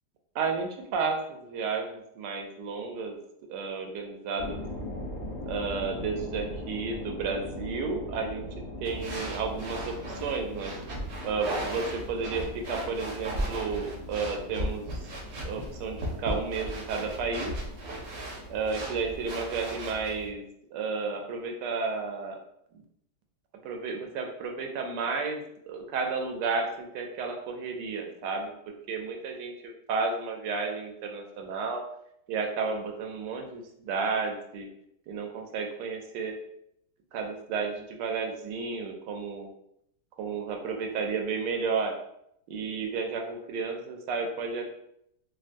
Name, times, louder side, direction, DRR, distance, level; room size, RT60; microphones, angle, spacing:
voice 1, 0.3-3.2 3.5-4.6 5.4-8.5 8.8-10.7 11.2-15.1 15.4-17.5 18.5-22.4 23.6-28.5 28.9-31.8 32.3-34.7 35.1-36.4 37.1-39.5 40.2-41.9 42.5-44.7, right 4 dB, 85° right, 3 dB, 1.2 m, -32 dB
sound 1, 4.4-19.6, left 1 dB, 65° left, 0.5 m, -41 dB
sound 2, 8.8-20.3, right 1 dB, 60° right, 0.7 m, -36 dB
3.5 x 2.1 x 2.5 m, 0.75 s
omnidirectional pair, 1.8 m